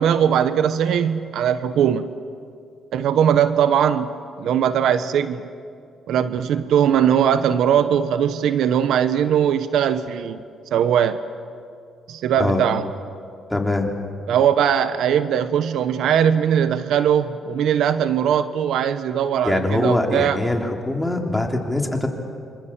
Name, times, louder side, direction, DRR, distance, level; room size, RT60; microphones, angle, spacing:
voice 1, 0.0-2.1 2.9-4.1 4.4-5.4 6.1-10.4 10.7-11.2 12.1-12.9 14.3-20.4, right 9 dB, 75° right, 11 dB, 1.0 m, -20 dB
voice 2, 13.5-13.9 19.4-22.1, left 2 dB, 10° left, 2 dB, 3.3 m, -22 dB
27.0 x 26.5 x 7.4 m, 2.3 s
cardioid pair, 90°, 0 cm